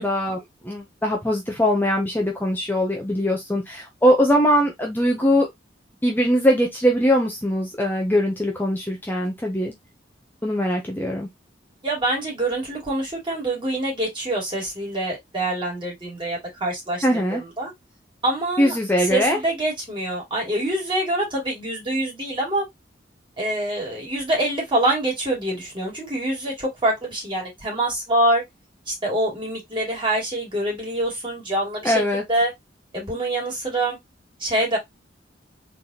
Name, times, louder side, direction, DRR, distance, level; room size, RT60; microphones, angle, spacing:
voice 1, 0.0-5.5 6.0-9.7 10.4-11.3 17.0-17.4 18.6-19.4 31.8-32.2, equal, 10° left, 0.7 m, -21 dB
voice 2, 11.8-17.7 18.2-18.7 19.1-22.7 23.4-28.4 28.9-32.0 32.3-32.5 32.9-34.0 34.4-34.8, right 1 dB, 30° right, 2.5 m, -25 dB
3.9 x 3.4 x 2.8 m
head